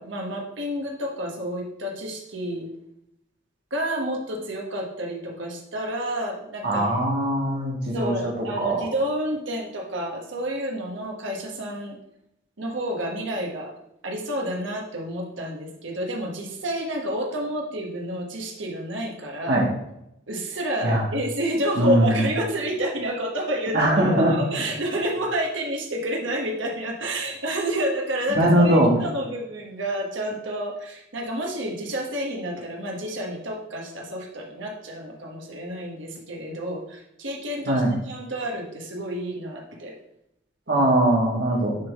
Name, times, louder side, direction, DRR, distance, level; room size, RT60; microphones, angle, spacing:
voice 1, 0.0-2.7 3.7-7.0 7.9-12.0 12.6-13.7 14.0-19.6 20.3-40.0 40.7-40.8, right 1 dB, 75° right, 0 dB, 1.3 m, -29 dB
voice 2, 6.6-8.9 19.5-19.7 20.8-21.0 21.8-22.2 23.7-24.4 28.3-29.0 37.7-37.9 40.7-41.8, right 1 dB, 55° right, -2 dB, 1.8 m, -21 dB
9.9 x 3.6 x 3.6 m, 0.79 s
head